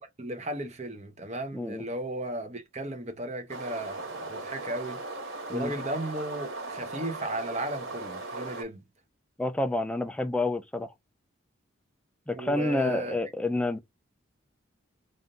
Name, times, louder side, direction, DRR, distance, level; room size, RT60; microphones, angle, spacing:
voice 1, 0.0-8.8 12.4-13.2, right 1 dB, 35° right, 0.9 m, -35 dB
voice 2, 1.5-1.8 5.5-5.7 9.4-10.9 12.3-13.8, left 2 dB, 5° left, 0.4 m, -28 dB
sound 1, 3.5-8.6, right 2 dB, 80° right, 1.8 m, -38 dB
3.6 x 2.6 x 3.7 m
head